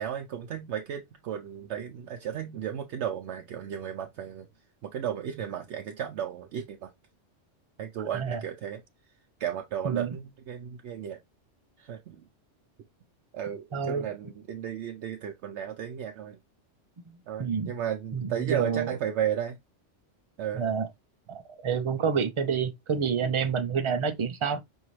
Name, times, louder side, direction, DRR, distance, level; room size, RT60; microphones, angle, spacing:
voice 1, 0.0-4.5 4.8-6.9 7.8-8.8 9.4-11.2 11.8-12.2 13.3-16.4 17.3-19.6 20.4-20.7, right 9 dB, 70° right, 0.8 m, -34 dB
voice 2, 9.8-10.2 13.7-14.1 17.1-17.7 18.1-19.0 20.5-20.9 21.3-24.6, right 6 dB, 50° right, 0.3 m, -28 dB
5.4 x 2.6 x 3.0 m
omnidirectional pair, 1.2 m